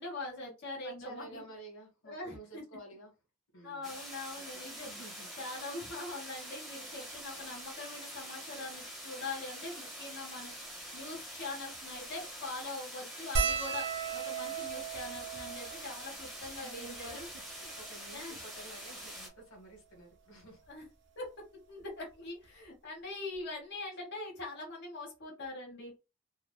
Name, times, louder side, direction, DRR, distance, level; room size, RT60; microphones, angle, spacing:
voice 1, 0.0-1.4 2.0-2.6 3.6-4.9 5.4-13.9 14.1-17.3 18.1-18.4 20.7-20.8 21.2-21.3 21.7-25.9, left 2 dB, 55° left, 1.2 m, -43 dB
voice 2, 0.8-3.1 3.5-3.9 4.4-4.5 4.8-5.4 16.6-20.6, right 2 dB, 90° left, 1.4 m, -51 dB
sound 1, 3.8-19.3, equal, ahead, 0.8 m, -45 dB
sound 2, 13.3-18.0 18.7-18.8 19.0-19.2 20.4-20.7 22.1-22.2 22.5-22.6, right 5 dB, 60° right, 0.6 m, -37 dB
3.1 x 2.0 x 2.2 m
head